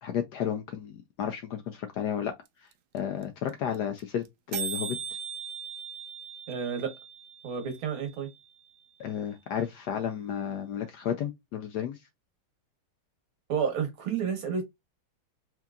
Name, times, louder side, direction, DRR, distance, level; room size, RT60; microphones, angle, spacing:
voice 1, 0.0-2.3 2.9-5.0 9.0-12.0, left 9 dB, 75° left, 1.0 m, -32 dB
sound 1, 2.5-2.6 2.7-2.8 3.0-3.2 3.5-3.6 3.7-4.0 4.3-4.4 4.5-8.5, right 6 dB, 70° right, 1.0 m, -39 dB
voice 2, 6.5-6.9 7.4-8.3 13.5-14.6, right 6 dB, 90° right, 2.1 m, -30 dB
4.5 x 2.7 x 2.3 m
omnidirectional pair, 2.2 m